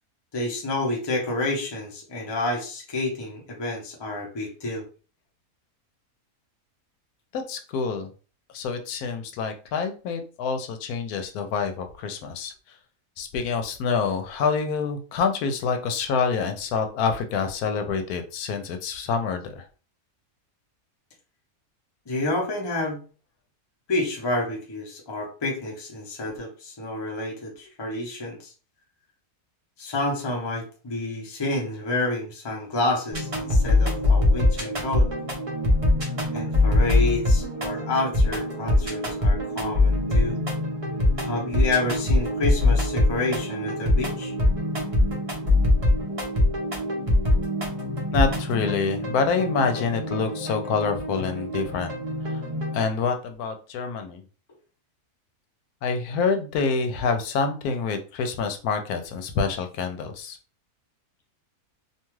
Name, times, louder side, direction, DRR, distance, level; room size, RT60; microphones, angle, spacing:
voice 1, 0.3-4.8 22.1-23.0 23.9-28.5 29.8-35.1 36.3-40.4 41.2-44.3, left 2 dB, 25° left, 0 dB, 0.5 m, -29 dB
voice 2, 7.3-8.1 8.5-12.5 13.2-19.6 48.1-51.9 52.3-52.4 52.7-54.2 55.8-60.4, left 5 dB, 85° left, 7 dB, 1.1 m, -27 dB
sound 1, 33.1-52.8, left 2 dB, 35° right, 0.5 m, -23 dB
2.7 x 2.3 x 3.0 m, 0.36 s
omnidirectional pair, 1.6 m